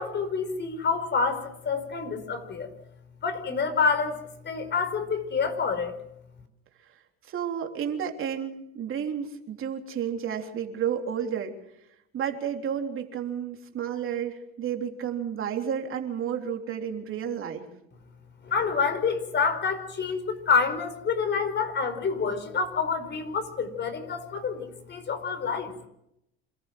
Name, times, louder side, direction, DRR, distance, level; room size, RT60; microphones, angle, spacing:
voice 1, 0.0-2.7 3.2-4.2 4.4-5.9 18.4-25.7, left 5 dB, 35° left, 9 dB, 5.1 m, -27 dB
voice 2, 6.9-11.5 12.1-17.7, right 8 dB, 45° right, 4 dB, 3.5 m, -31 dB
27.5 x 14.5 x 7.8 m, 0.80 s
hypercardioid pair, 85°, 30 cm